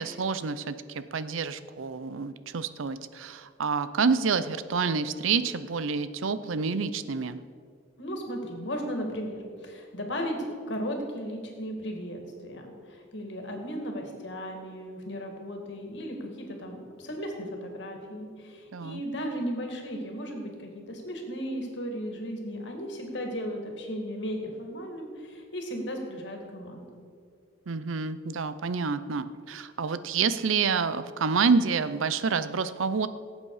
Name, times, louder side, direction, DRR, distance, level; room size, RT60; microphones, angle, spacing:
voice 1, 0.0-7.4 18.7-19.0 27.7-33.1, right 5 dB, 90° right, 13 dB, 0.6 m, -28 dB
voice 2, 8.0-27.0, equal, 65° left, 3 dB, 2.2 m, -36 dB
17.5 x 8.2 x 4.9 m, 2.2 s
head